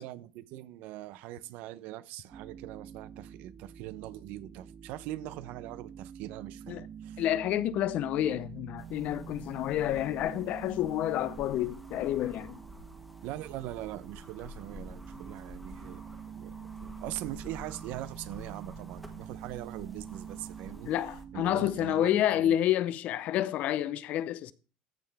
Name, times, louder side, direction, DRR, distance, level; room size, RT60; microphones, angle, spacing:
voice 1, 0.0-7.2 13.2-16.5 16.8-20.9 21.3-22.6, right 15 dB, 65° right, 0.7 m, -42 dB
sound 1, 2.3-21.9, right 8 dB, 25° right, 0.5 m, -46 dB
voice 2, 7.2-12.6 20.9-24.5, left 12 dB, 50° left, 0.6 m, -29 dB
sound 2, 8.8-21.2, left 1 dB, ahead, 1.4 m, -50 dB
14.0 x 5.8 x 3.5 m
cardioid pair, 145°, 3 cm